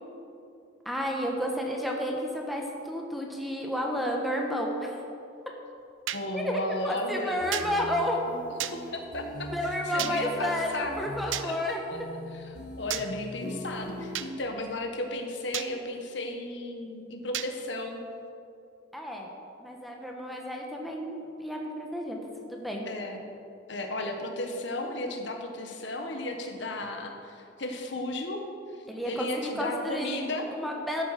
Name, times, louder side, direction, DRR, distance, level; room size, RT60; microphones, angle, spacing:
voice 1, 0.8-4.9 6.3-8.2 9.5-11.8 18.9-19.3 19.6-22.2 22.4-22.9 28.9-31.0, equal, ahead, 0 dB, 1.2 m, -31 dB
voice 2, 6.1-7.4 8.6-10.9 11.2-12.0 12.3-18.0 22.9-23.2 23.7-28.4 28.7-30.5, left 2 dB, 70° left, 3 dB, 1.4 m, -35 dB
sound 1, 6.1-6.2 7.5-7.7 8.6-8.8 10.0-10.2 11.3-11.5 12.9-13.1 14.1-14.3 15.5-15.7 17.3-17.5, right 12 dB, 85° right, 0.6 m, -32 dB
sound 2, 7.4-14.3, left 1 dB, 45° left, 1.6 m, -42 dB
13.0 x 8.5 x 5.9 m, 2.6 s
head